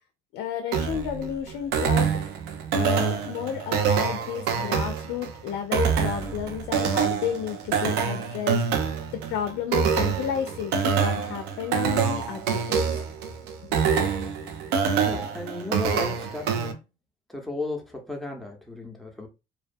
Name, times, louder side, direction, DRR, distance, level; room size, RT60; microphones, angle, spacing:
voice 1, 0.3-2.1 2.7-12.8 13.6-13.8, left 9 dB, 85° left, 0.4 m, -32 dB
sound 1, 0.7-16.7, right 6 dB, 90° right, 0.4 m, -26 dB
voice 2, 15.0-16.8 17.3-19.3, left 2 dB, ahead, 0.6 m, -35 dB
2.2 x 2.2 x 2.5 m
cardioid pair, 110°, 17 cm